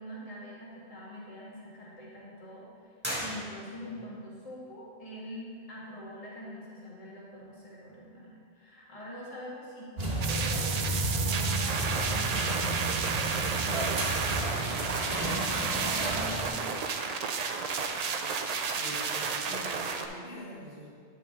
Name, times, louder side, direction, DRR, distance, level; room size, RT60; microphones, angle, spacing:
voice 1, 0.0-2.9 3.2-10.9 11.3-12.4 12.8-14.9 15.2-17.1, equal, 30° left, -6 dB, 1.6 m, -44 dB
sound 1, 3.0-4.0, equal, 10° right, 1.7 m, -37 dB
sound 2, 10.0-16.5, right 2 dB, 55° right, 1.4 m, -32 dB
sound 3, 10.2-20.1, right 5 dB, 70° right, 0.3 m, -32 dB
voice 2, 18.6-21.0, equal, 60° left, -7 dB, 1.7 m, -45 dB
9.0 x 5.8 x 3.6 m, 2.1 s
omnidirectional pair, 1.2 m